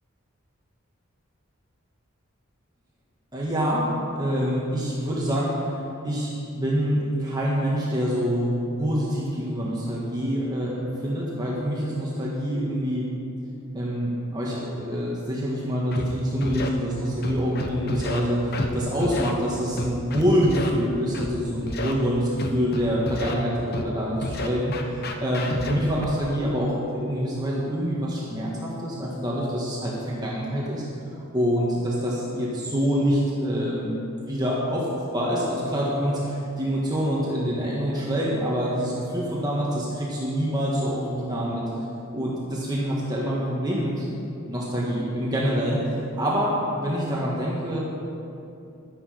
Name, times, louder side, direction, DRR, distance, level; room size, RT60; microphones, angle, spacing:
voice 1, 3.3-13.1 13.7-30.8 31.3-33.9 34.3-41.6 42.1-44.0 44.5-47.8, equal, 20° right, -5 dB, 1.5 m, -26 dB
Scratching (performance technique), 15.9-16.0 16.4-16.7 17.2-18.2 18.5-18.7 19.0-19.3 19.8-20.7 21.1-21.3 21.7-21.9 22.4-23.3 23.7-23.9 24.2-26.1, left 2 dB, 50° left, 0.9 m, -30 dB
12.0 x 9.9 x 5.0 m, 2.7 s
head